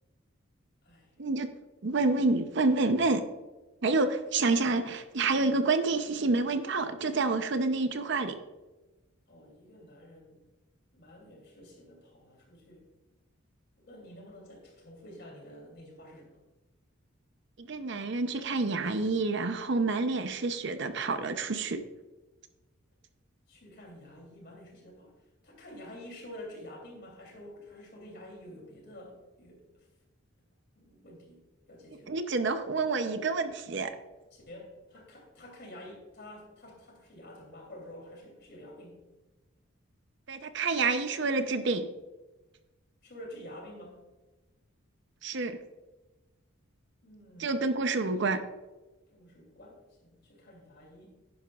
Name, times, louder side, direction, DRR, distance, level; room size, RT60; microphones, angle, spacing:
voice 1, 1.8-3.2 3.8-8.4 17.6-21.8 32.1-33.9 40.3-41.9 45.2-45.6 47.4-48.4, right 3 dB, 55° right, 9 dB, 0.6 m, -28 dB
voice 2, 9.3-10.4 10.9-12.8 13.8-16.4 23.5-25.1 25.4-29.9 30.7-31.4 31.7-32.1 34.3-39.0 43.0-44.0 47.0-47.6 49.1-49.8 50.0-51.1, left 1 dB, 50° left, 0 dB, 3.1 m, -49 dB
11.0 x 10.0 x 2.4 m, 1.1 s
head